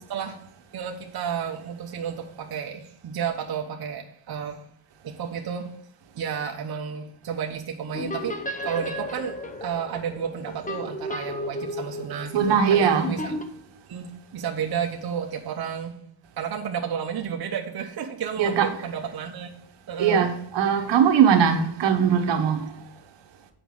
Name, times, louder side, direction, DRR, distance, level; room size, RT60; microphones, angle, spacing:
voice 1, 0.1-0.4 0.7-4.7 5.0-5.8 6.2-13.3 13.9-15.9 16.4-19.5 19.9-20.3, right 7 dB, 55° right, 0.9 m, -32 dB
sound 1, 7.9-13.4, left 1 dB, 20° left, 0.9 m, -34 dB
voice 2, 12.3-13.1 18.4-18.7 20.0-22.6, right 7 dB, 75° right, 1.2 m, -20 dB
7.8 x 5.1 x 4.7 m
cardioid pair, 105°, 43 cm